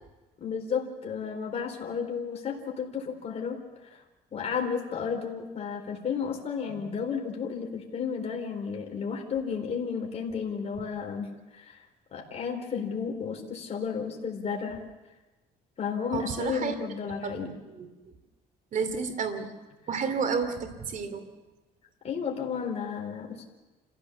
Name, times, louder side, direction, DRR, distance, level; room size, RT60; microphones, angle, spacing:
voice 1, 0.4-3.6 4.3-11.3 11.5-11.8 12.1-14.8 15.8-17.5 22.0-23.5, left 6 dB, 40° left, 1 dB, 4.0 m, -32 dB
voice 2, 16.1-16.8 17.2-17.9 18.7-19.5 19.9-21.2, right 5 dB, 50° right, 9 dB, 2.8 m, -31 dB
27.5 x 15.5 x 7.3 m, 1.1 s
cardioid pair, 110°, 17 cm